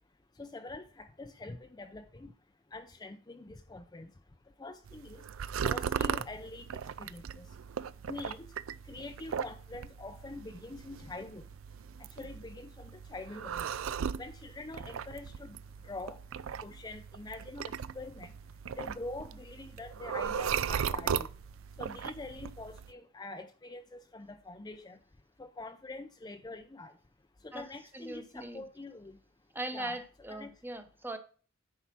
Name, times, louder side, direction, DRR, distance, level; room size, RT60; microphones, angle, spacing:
voice 1, 0.4-2.3 2.7-4.1 4.6-5.2 5.6-7.5 8.1-8.5 8.8-11.5 12.0-13.7 14.2-15.6 15.8-16.2 16.6-18.3 18.7-21.3 21.8-25.0 25.4-26.9 27.4-29.2 29.7-30.0 30.3-30.5, left 2 dB, 20° left, 8 dB, 0.5 m, -45 dB
sound 1, 4.8-22.9, right 7 dB, 85° right, 0.4 m, -38 dB
voice 2, 27.9-28.7 29.5-31.2, right 1 dB, 10° right, 8 dB, 0.9 m, -40 dB
9.8 x 4.7 x 5.9 m, 0.39 s
head